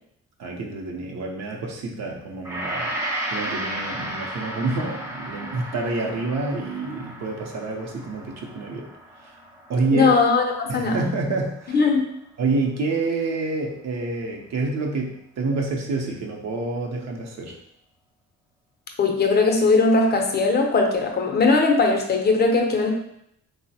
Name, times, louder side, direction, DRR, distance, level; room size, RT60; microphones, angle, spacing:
voice 1, 0.4-2.9 3.3-8.9 9.2-9.3 9.7-10.1 10.7-11.8 12.4-17.6, right 3 dB, 60° right, 0 dB, 0.6 m, -28 dB
Gong, 2.4-10.9 11.2-11.4, right 1 dB, 10° right, 0.6 m, -34 dB
voice 2, 9.9-11.0 11.7-12.1 19.0-22.9, left 3 dB, 35° left, 2 dB, 0.5 m, -19 dB
3.2 x 2.1 x 2.6 m, 0.75 s
cardioid pair, 90°, 30 cm